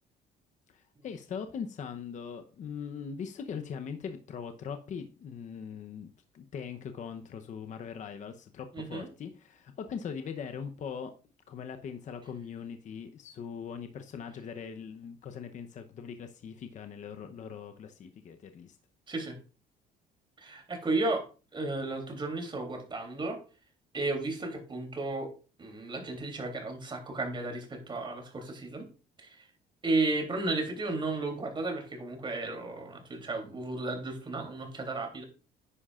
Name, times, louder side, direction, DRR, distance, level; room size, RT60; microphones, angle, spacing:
voice 1, 0.7-11.1 11.5-18.8, left 7 dB, 45° left, 7 dB, 0.8 m, -41 dB
voice 2, 8.7-9.1 19.1-19.4 20.4-21.2 21.5-23.4 23.9-25.3 25.6-28.9 29.2-29.5 29.8-35.2, right 2 dB, 30° right, 4 dB, 3.1 m, -33 dB
10.0 x 9.8 x 2.5 m, 0.35 s
cardioid pair, 110°, 17 cm